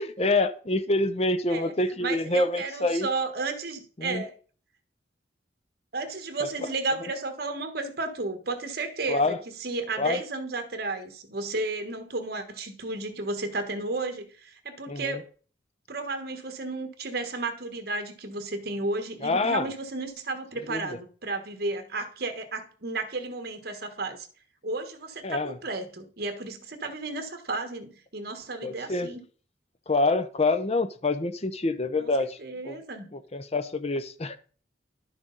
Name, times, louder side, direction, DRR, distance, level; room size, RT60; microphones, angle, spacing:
voice 1, 0.0-3.1 4.0-4.2 9.1-9.4 10.0-10.2 14.9-15.2 19.2-19.7 20.7-20.9 25.2-25.6 28.6-29.1 29.9-32.4 32.6-32.8 33.1-34.4, left 2 dB, 35° left, 0.7 m, -26 dB
voice 2, 2.0-4.3 5.9-15.2 15.9-24.3 24.6-29.2 32.0-33.1, right 3 dB, 55° right, 1.3 m, -33 dB
11.0 x 6.3 x 4.0 m
head